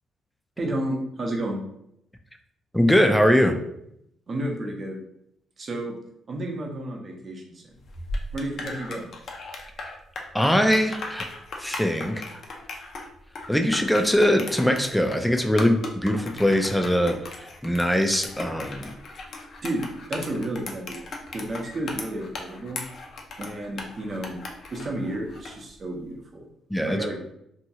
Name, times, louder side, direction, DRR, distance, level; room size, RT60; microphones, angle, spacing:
voice 1, 0.6-1.6 4.3-5.0 5.6-5.9 6.3-7.7 8.3-9.1 19.6-21.0 21.3-22.8 23.4-24.4 24.7-26.5 26.8-27.2, right 1 dB, 40° right, 1 dB, 0.7 m, -31 dB
voice 2, 2.7-3.6 10.3-11.2 11.6-12.2 13.5-17.2 17.6-18.9 26.7-27.0, equal, 5° left, 4 dB, 0.4 m, -21 dB
sound 1, 7.8-25.6, left 3 dB, 60° left, 0.5 m, -37 dB
2.8 x 2.3 x 2.7 m, 0.76 s
cardioid pair, 90°, 0 cm